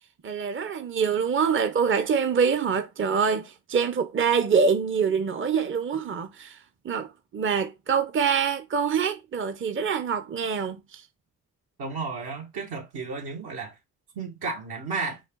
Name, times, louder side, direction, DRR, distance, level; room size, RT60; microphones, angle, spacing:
voice 1, 0.2-6.6 6.8-11.0, right 6 dB, 35° right, 0.7 m, -25 dB
voice 2, 11.8-13.8 14.1-15.2, right 4 dB, 75° right, 1.9 m, -33 dB
5.2 x 2.5 x 3.8 m
supercardioid pair, 50°, 38 cm